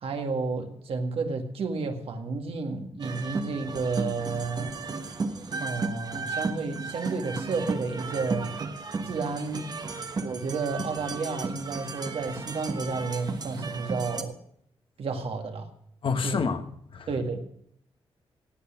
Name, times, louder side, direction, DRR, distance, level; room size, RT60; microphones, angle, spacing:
voice 1, 0.0-4.7 5.6-8.5 9.1-9.7 10.2-14.4 15.0-15.7 16.2-16.4 17.1-17.4, right 4 dB, 70° right, 2.0 m, -31 dB
sound 1, 3.0-14.2, right 4 dB, 40° right, 1.3 m, -34 dB
voice 2, 16.0-16.6 16.9-17.1, left 5 dB, 60° left, 1.4 m, -28 dB
17.0 x 8.5 x 5.9 m
wide cardioid pair, 110°, 10 cm